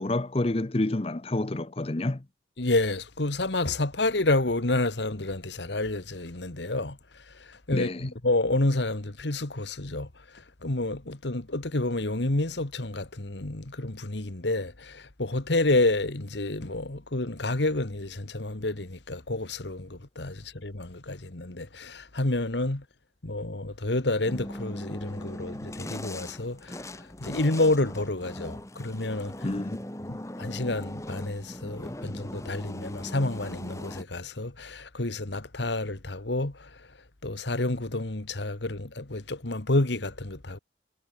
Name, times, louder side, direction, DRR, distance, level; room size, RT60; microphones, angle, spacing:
voice 1, 0.0-2.2 7.7-8.1 29.4-29.8 30.1-30.2, left 2 dB, 30° left, 0.7 m, -29 dB
voice 2, 2.6-7.0 7.7-10.1 10.6-22.8 23.2-26.7 27.2-29.3 30.1-36.7 37.2-40.6, left 2 dB, 75° left, 1.7 m, -29 dB
sound 1, 24.3-34.0, left 1 dB, 15° left, 1.4 m, -39 dB
head